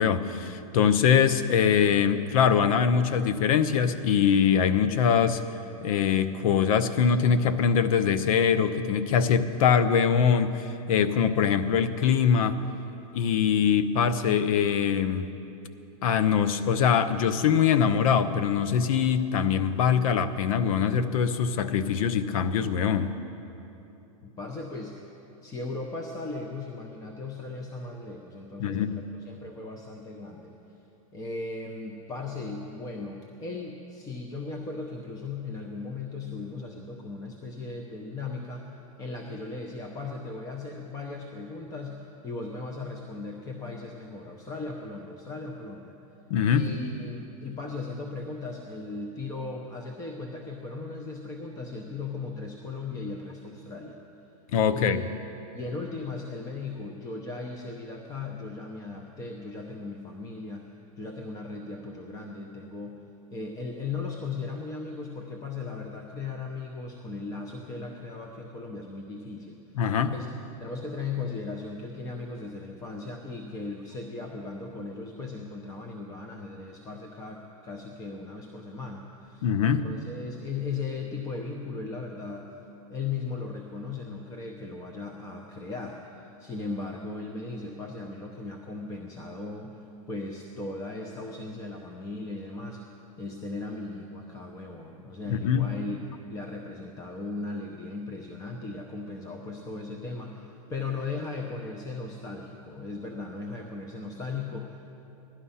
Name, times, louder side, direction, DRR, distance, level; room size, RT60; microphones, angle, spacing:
voice 1, 0.0-5.4 5.8-12.6 13.1-15.3 16.0-23.1 28.6-29.1 46.3-46.7 54.5-55.0 69.8-70.1 79.4-79.8 95.3-95.7, left 7 dB, 65° left, 12 dB, 0.8 m, -23 dB
voice 2, 24.2-25.0 25.4-30.6 31.1-45.9 46.5-54.0 54.7-55.1 55.5-63.0 63.3-69.6 70.1-70.3 70.6-82.5 82.9-92.8 93.2-104.9, left 3 dB, 20° left, 2 dB, 0.8 m, -37 dB
16.5 x 11.5 x 5.6 m, 3.0 s
supercardioid pair, 140°, 19 cm